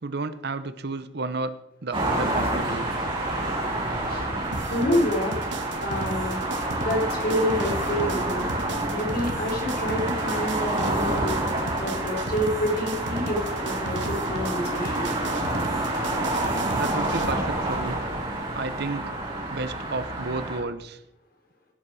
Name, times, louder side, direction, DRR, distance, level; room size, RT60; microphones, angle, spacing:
voice 1, 0.0-2.9 16.7-18.0 18.5-19.1 19.5-21.0, right 3 dB, 60° right, 13 dB, 0.8 m, -32 dB
sound 1, 1.9-20.6, right 1 dB, 30° right, 4.6 m, -28 dB
sound 2, 4.5-17.3, right 2 dB, 80° right, 1.5 m, -35 dB
voice 2, 4.7-5.3 5.8-6.4 6.7-8.5 8.9-11.4 11.8-15.1, equal, 55° left, 0 dB, 3.9 m, -28 dB
16.5 x 7.9 x 4.8 m, 0.82 s
head